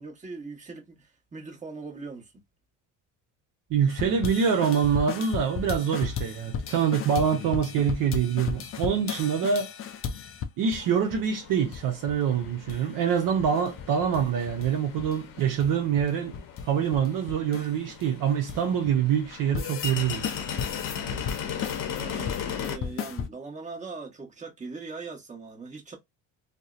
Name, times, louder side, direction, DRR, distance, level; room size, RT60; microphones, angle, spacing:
voice 1, 0.0-2.3 21.9-26.0, right 4 dB, 20° right, 1.0 m, -40 dB
voice 2, 3.7-9.7 10.6-16.3 16.6-20.4, right 7 dB, 55° right, 0.7 m, -25 dB
sound 1, 3.9-10.8 11.1-11.2 11.5-12.2 12.4-12.8 13.1-14.7 15.0-18.9 19.3-19.9 20.2-23.3, left 7 dB, 35° left, 0.4 m, -35 dB
sound 2, 10.6-22.8, left 7 dB, 55° left, 0.8 m, -38 dB
2.6 x 2.1 x 2.3 m
supercardioid pair, 90°, 39 cm